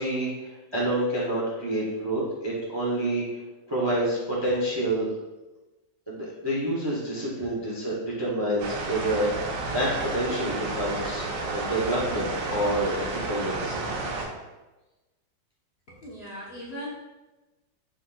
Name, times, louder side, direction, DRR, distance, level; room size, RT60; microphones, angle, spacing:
voice 1, 0.0-3.2 3.7-5.1 6.1-13.8, right 1 dB, 25° right, -6 dB, 0.5 m, -28 dB
sound 1, 8.6-14.3, right 3 dB, 85° right, 1.5 m, -31 dB
voice 2, 16.0-16.9, equal, 45° left, -7 dB, 0.9 m, -38 dB
5.8 x 3.6 x 2.3 m, 1.1 s
omnidirectional pair, 1.9 m